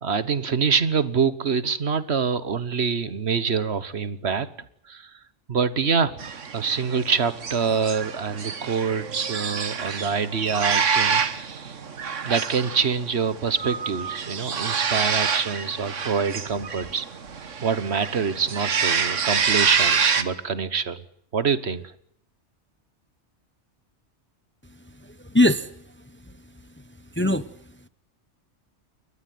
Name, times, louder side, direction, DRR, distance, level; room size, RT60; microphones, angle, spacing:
voice 1, 0.0-4.5 4.9-5.1 5.5-6.2 6.5-11.8 12.2-17.0 17.6-21.0 21.3-21.9, right 6 dB, 60° right, 15 dB, 1.5 m, -25 dB
sound 1, 6.2-20.2, right 6 dB, 85° right, 1.7 m, -27 dB
voice 2, 24.8-26.3 26.8-26.9 27.1-27.5, left 1 dB, 10° left, 14 dB, 0.9 m, -23 dB
30.0 x 13.5 x 9.4 m, 0.70 s
omnidirectional pair, 1.2 m